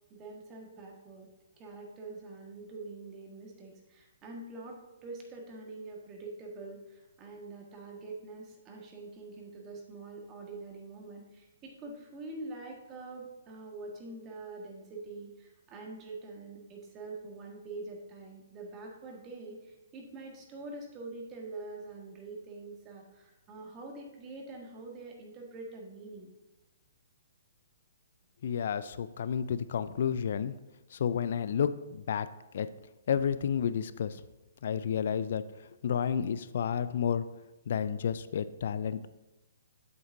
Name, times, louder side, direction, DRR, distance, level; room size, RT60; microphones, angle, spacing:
voice 1, 0.1-26.3, right 3 dB, 25° right, 0 dB, 1.6 m, -45 dB
voice 2, 28.4-30.5 30.9-32.3 32.5-32.7 33.1-34.2 34.6-35.4 35.8-37.2 37.7-39.1, left 8 dB, 55° left, 14 dB, 0.4 m, -31 dB
8.1 x 7.7 x 2.7 m, 1.0 s
figure-of-eight pair, 125°, 0 cm